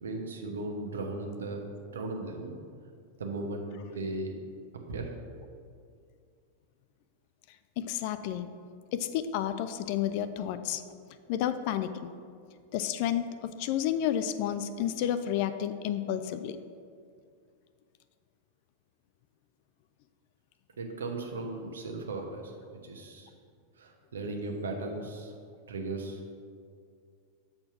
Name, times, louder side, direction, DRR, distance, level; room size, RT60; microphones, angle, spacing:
voice 1, 0.0-1.6 1.9-2.6 3.2-4.3 4.9-5.1 20.8-23.3 23.8-25.3 25.7-26.2, right 2 dB, 65° right, 2 dB, 1.0 m, -37 dB
voice 2, 7.8-8.5 8.9-10.8 11.3-12.1 12.7-16.6, left 10 dB, 45° left, 11 dB, 0.3 m, -31 dB
7.5 x 4.3 x 5.7 m, 2.3 s
figure-of-eight pair, 90°, 0 cm